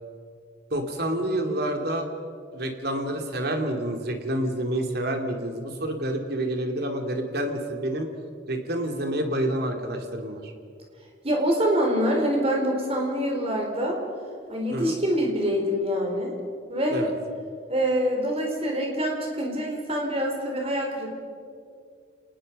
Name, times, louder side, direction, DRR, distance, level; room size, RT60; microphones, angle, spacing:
voice 1, 0.7-2.1 2.5-8.1 8.5-10.5 14.7-14.9 16.9-17.1, right 1 dB, 55° right, 3 dB, 2.7 m, -28 dB
voice 2, 11.2-14.0 14.5-16.3 16.7-17.1 17.7-21.2, equal, 30° right, 1 dB, 4.5 m, -25 dB
30.0 x 19.5 x 5.5 m, 2.3 s
head